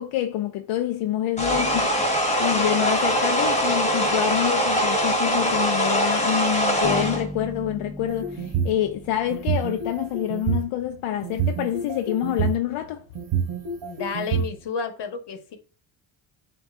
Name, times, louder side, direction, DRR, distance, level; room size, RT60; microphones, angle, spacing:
voice 1, 0.0-13.0, left 12 dB, 80° left, 0.5 m, -27 dB
sound 1, 1.4-7.2, equal, 15° left, 1.3 m, -22 dB
Bass guitar, 6.8-10.6, right 1 dB, ahead, 0.9 m, -37 dB
sound 2, 8.1-8.8 9.3-10.7 11.2-12.5 13.1-14.4, right 7 dB, 60° right, 1.0 m, -26 dB
voice 2, 13.8-15.6, left 5 dB, 55° left, 1.1 m, -31 dB
7.2 x 2.5 x 2.5 m
cardioid pair, 75°, 50 cm